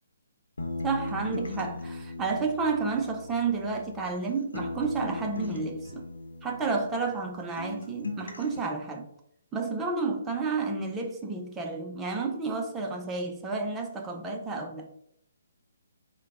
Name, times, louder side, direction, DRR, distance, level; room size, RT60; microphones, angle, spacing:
sound 1, 0.6-4.2 4.5-7.3 7.6-8.6, left 2 dB, 85° left, 0.9 m, -38 dB
voice 1, 0.8-6.0 6.4-9.1 9.5-14.9, right 4 dB, 15° right, 0.7 m, -31 dB
4.7 x 2.3 x 4.7 m
figure-of-eight pair, 140°, 0 cm